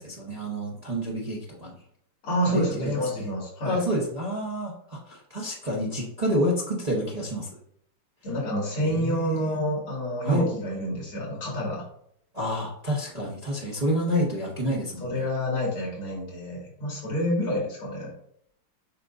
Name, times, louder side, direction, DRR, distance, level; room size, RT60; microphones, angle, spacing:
voice 1, 0.0-1.7 2.4-3.3 3.6-7.5 8.8-9.6 10.2-10.4 12.3-15.2, equal, 30° right, -3 dB, 0.7 m, -29 dB
voice 2, 2.2-3.8 8.2-11.9 15.0-18.1, equal, 80° left, -3 dB, 3.1 m, -28 dB
7.4 x 5.3 x 2.6 m, 0.70 s
omnidirectional pair, 2.4 m